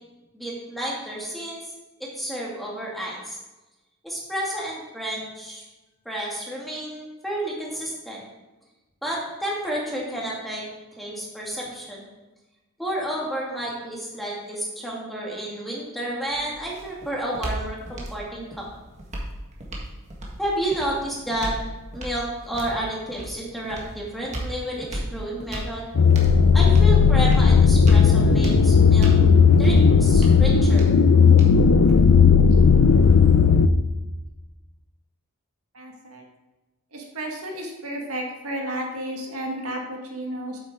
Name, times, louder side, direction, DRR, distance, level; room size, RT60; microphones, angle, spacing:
voice 1, 0.3-1.6 2.0-3.4 4.0-5.6 6.0-8.2 9.0-10.6 11.0-12.1 12.8-18.6 20.4-21.5 21.9-25.8 26.5-29.1 29.6-30.9, right 1 dB, ahead, -4 dB, 2.2 m, -31 dB
sound 1, 16.3-32.3, right 1 dB, 30° right, 1.7 m, -36 dB
sound 2, 26.0-33.7, left 5 dB, 75° left, 0.5 m, -15 dB
voice 2, 35.8-36.2 36.9-40.6, right 1 dB, 80° right, 1 dB, 1.7 m, -32 dB
8.6 x 7.9 x 3.7 m, 1.1 s
head